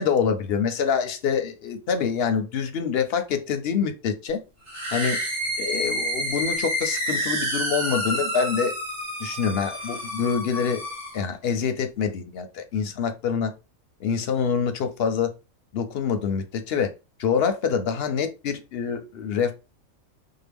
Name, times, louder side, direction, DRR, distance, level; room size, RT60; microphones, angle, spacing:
voice 1, 0.0-4.4 4.9-5.2 5.6-8.7 9.2-10.8 11.1-13.5 14.0-15.3 15.7-16.9 17.2-19.5, left 6 dB, 60° left, 0.7 m, -26 dB
sound 1, 4.7-11.2, equal, 65° right, 2.5 m, -29 dB
4.6 x 2.1 x 3.4 m
omnidirectional pair, 1.4 m